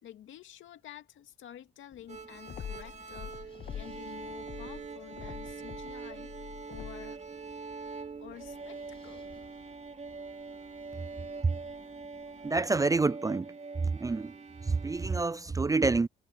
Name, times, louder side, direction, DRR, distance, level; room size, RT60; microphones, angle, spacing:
voice 1, 0.0-6.3 6.7-7.2 8.2-9.3, left 11 dB, 75° left, 2.3 m, -50 dB
Wind, 1.9-12.6, left 4 dB, 30° left, 5.0 m, -59 dB
sound 1, 2.1-15.2, right 4 dB, 35° right, 3.0 m, -44 dB
sound 2, 2.5-4.1 4.4-7.2, left 9 dB, 45° left, 0.7 m, -44 dB
voice 2, 12.4-13.5 13.8-14.3 14.7-16.1, right 3 dB, 15° right, 0.4 m, -27 dB
cardioid pair, 90°, 20 cm